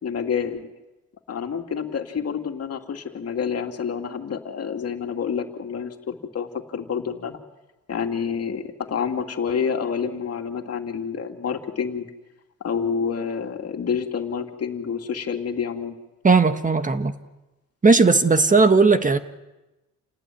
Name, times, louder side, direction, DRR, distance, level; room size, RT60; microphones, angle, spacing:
voice 1, 0.0-0.7 1.3-7.4 7.9-12.1 12.6-15.9, left 6 dB, 55° left, 5 dB, 2.8 m, -28 dB
voice 2, 16.2-17.2 17.8-19.2, right 4 dB, 25° right, 10 dB, 1.5 m, -17 dB
29.0 x 18.5 x 9.4 m, 1.0 s
cardioid pair, 90°, 30 cm